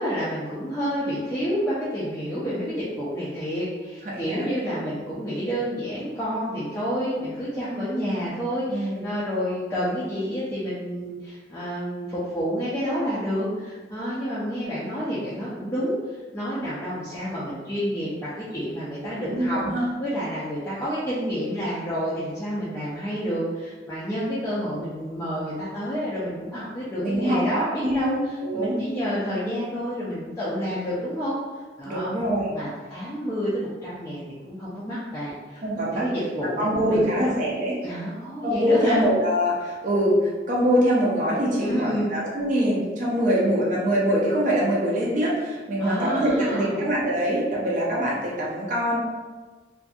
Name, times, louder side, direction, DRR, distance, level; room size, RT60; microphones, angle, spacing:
voice 1, 0.0-31.4 31.8-32.1 32.5-35.6 35.9-37.3 37.8-39.0 41.6-42.1 45.8-46.8, equal, 15° left, -11 dB, 0.4 m, -29 dB
voice 2, 4.0-4.5 8.7-9.0 19.2-19.8 27.0-28.2 28.4-28.8 31.8-32.5 35.6-36.1 36.6-37.8 38.4-49.0, equal, 45° right, -5 dB, 0.5 m, -24 dB
2.6 x 2.5 x 2.3 m, 1.3 s
head